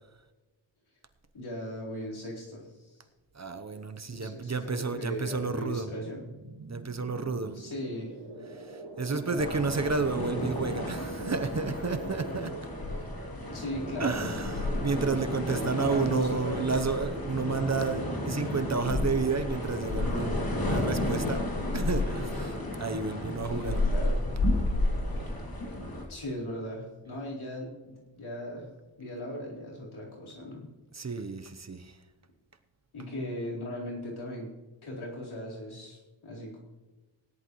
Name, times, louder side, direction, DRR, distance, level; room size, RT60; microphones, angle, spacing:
voice 1, 1.3-3.0 4.1-6.3 7.5-8.1 9.1-9.6 13.5-14.3 15.5-16.9 23.5-24.2 26.1-28.7 29.0-30.7 31.0-31.1 32.9-34.5 34.8-36.6, left 1 dB, 85° left, -5 dB, 4.2 m, -38 dB
voice 2, 3.3-5.9 6.7-7.6 8.5-12.5 14.0-21.4 21.7-23.8 30.9-32.0, right 4 dB, 35° right, 9 dB, 0.9 m, -31 dB
sound 1, 5.3-15.8, right 3 dB, 55° right, 1.9 m, -45 dB
sound 2, 9.4-26.0, left 1 dB, 50° left, 2.9 m, -32 dB
17.5 x 11.0 x 3.1 m, 1.2 s
cardioid pair, 60°, 47 cm